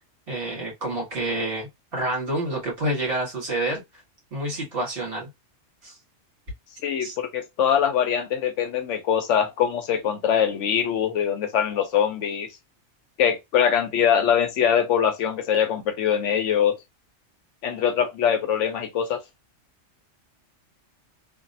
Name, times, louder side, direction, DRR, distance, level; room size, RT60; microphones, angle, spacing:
voice 1, 0.3-3.8 4.3-5.3 5.8-6.0 7.0-7.1, right 1 dB, 45° right, 1.6 m, -28 dB
voice 2, 6.8-12.5 13.2-16.8 17.6-19.2, left 8 dB, 75° left, 0.9 m, -23 dB
2.9 x 2.5 x 2.6 m
omnidirectional pair, 1.3 m